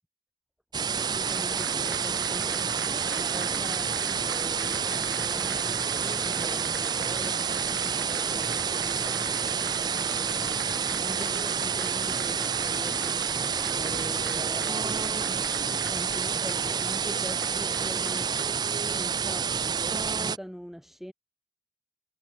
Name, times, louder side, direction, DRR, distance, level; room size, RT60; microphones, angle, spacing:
sound 1, 0.7-20.4, right 6 dB, 20° right, 0.5 m, -29 dB
Applause / Crowd, 0.8-19.4, right 6 dB, 75° right, 2.0 m, -42 dB
voice 1, 0.9-2.7 3.1-15.0 15.9-18.4 18.8-21.1, equal, ahead, 3.2 m, -44 dB
head